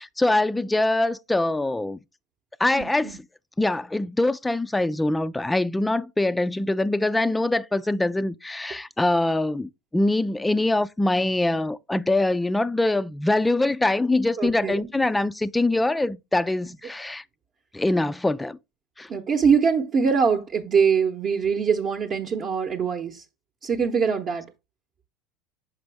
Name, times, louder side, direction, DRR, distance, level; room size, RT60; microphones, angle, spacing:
voice 1, 0.0-2.0 2.6-3.2 3.6-17.2 17.7-18.6 19.0-19.1, left 2 dB, 10° left, 0.3 m, -23 dB
voice 2, 2.8-3.2 14.4-14.8 19.1-23.2 23.6-24.4, right 6 dB, 40° right, 0.8 m, -23 dB
6.0 x 5.1 x 3.4 m
hypercardioid pair, 90°, 0 cm